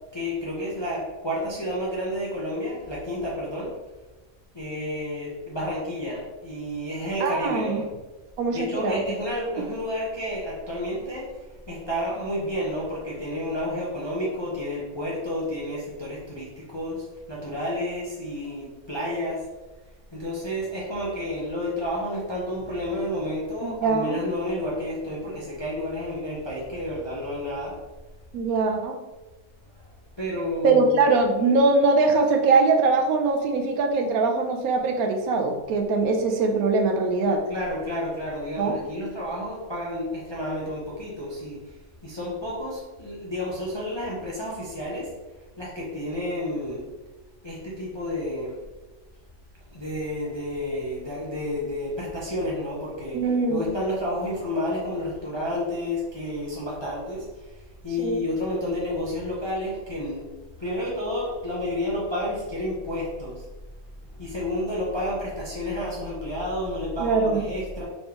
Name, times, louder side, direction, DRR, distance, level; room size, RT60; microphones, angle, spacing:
voice 1, 0.1-3.7 4.5-7.9 8.5-11.3 11.7-19.4 20.1-27.8 30.2-31.1 37.5-41.7 42.0-45.1 45.6-46.9 47.4-48.6 49.7-60.3 60.6-63.5 64.1-67.8, left 1 dB, 30° left, -5 dB, 0.5 m, -30 dB
voice 2, 7.2-7.8 8.4-9.0 9.6-9.7 23.6-24.2 28.3-29.0 30.6-37.4 38.6-38.8 53.1-53.7 58.0-58.2 67.0-67.5, right 3 dB, 75° right, 4 dB, 1.0 m, -22 dB
4.2 x 3.3 x 2.8 m, 1.2 s
omnidirectional pair, 1.6 m